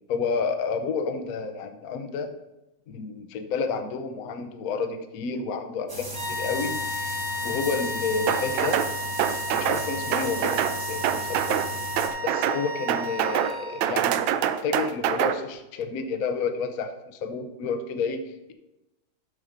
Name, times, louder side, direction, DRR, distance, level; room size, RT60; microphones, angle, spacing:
voice 1, 0.1-2.3 2.9-8.8 9.5-10.6 10.9-11.6 12.2-18.5, left 5 dB, 60° left, 7 dB, 1.0 m, -30 dB
sound 1, 5.9-12.1, right 1 dB, 15° right, 0.7 m, -36 dB
sound 2, 6.1-14.0, left 1 dB, 40° right, 1.8 m, -33 dB
sound 3, 8.3-8.9 9.2-9.8 10.1-10.8 11.0-11.7 12.0-12.6 12.9-13.5 13.8-15.4, right 10 dB, 80° right, 1.3 m, -25 dB
12.5 x 8.8 x 2.7 m, 0.96 s
omnidirectional pair, 2.1 m